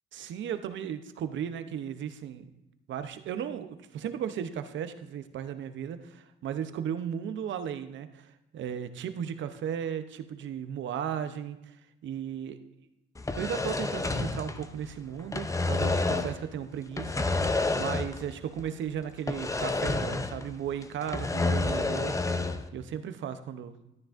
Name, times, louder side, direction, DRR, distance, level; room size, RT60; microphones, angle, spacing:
voice 1, 0.1-2.5 2.9-12.6 13.4-17.3 17.5-22.4 22.7-23.7, right 9 dB, 70° right, 10 dB, 0.7 m, -36 dB
sound 1, 13.2-14.9 15.2-16.4 16.9-18.3 18.6-18.7 19.3-20.5 20.8-22.7, left 3 dB, 15° left, 0.6 m, -29 dB
13.0 x 9.6 x 2.6 m, 0.91 s
cardioid pair, 90°, 20 cm